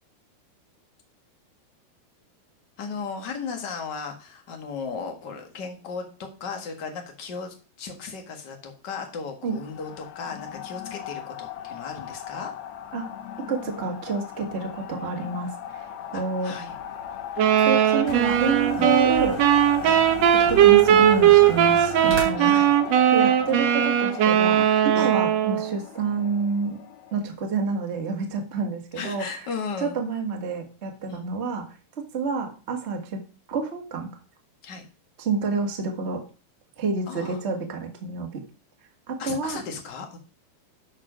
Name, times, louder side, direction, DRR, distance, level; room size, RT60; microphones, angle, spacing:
voice 1, 2.8-12.5 16.1-16.7 18.8-18.9 19.8-20.0 22.3-22.7 24.9-25.2 28.9-30.0 31.1-31.3 34.6-34.8 37.1-37.4 39.2-40.2, left 5 dB, 45° left, 4 dB, 1.3 m, -36 dB
sound 1, 9.5-27.2, left 10 dB, 85° left, 1.5 m, -38 dB
voice 2, 13.5-15.8 16.1-16.5 17.6-19.4 20.3-22.5 23.1-26.8 27.1-29.2 29.8-31.6 32.1-33.2 33.5-34.1 35.2-36.2 36.8-38.4 39.1-39.6, right 4 dB, 70° right, 1 dB, 0.6 m, -28 dB
sound 2, 16.6-22.2, right 2 dB, 35° right, 3.1 m, -37 dB
sound 3, 17.4-25.7, right 10 dB, 85° right, 1.4 m, -19 dB
12.0 x 5.2 x 5.0 m, 0.35 s
omnidirectional pair, 4.6 m